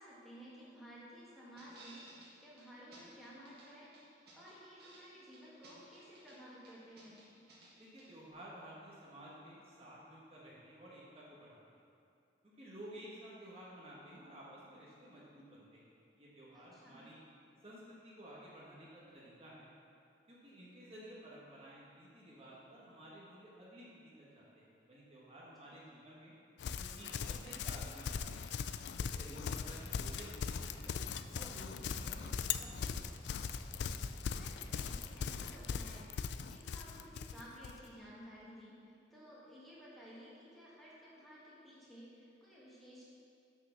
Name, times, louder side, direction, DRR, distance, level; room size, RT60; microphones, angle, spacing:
voice 1, 0.0-3.9 4.3-7.2 16.5-17.0 34.3-36.1 36.4-43.1, equal, ahead, -8 dB, 1.6 m, -55 dB
sound 1, 1.6-2.3 2.6-2.7 2.9-3.7 3.9-5.0 5.3-6.4 6.6-7.7 8.0-8.1, right 2 dB, 60° right, 1.8 m, -58 dB
voice 2, 7.8-11.6 12.4-17.2 17.6-19.7 20.3-26.3 26.8-28.5 29.0-31.0 31.3-32.3 32.6-33.5, right 1 dB, 35° right, -6 dB, 1.3 m, -53 dB
Livestock farm animals working animals, 26.6-37.8, left 6 dB, 70° left, 0.3 m, -40 dB
sound 2, 29.0-35.6, left 1 dB, 25° left, 0.6 m, -52 dB
6.5 x 6.0 x 5.8 m, 2.5 s
head